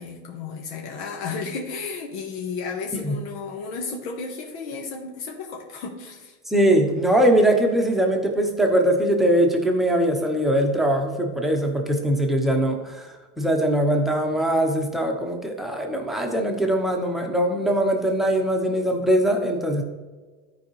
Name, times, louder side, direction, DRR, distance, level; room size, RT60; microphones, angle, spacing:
voice 1, 0.0-6.4, left 4 dB, 85° left, 1 dB, 1.4 m, -33 dB
voice 2, 6.5-13.1 13.4-19.8, right 1 dB, ahead, 1 dB, 0.8 m, -21 dB
13.0 x 4.7 x 3.2 m, 1.3 s
cardioid pair, 155°, 33 cm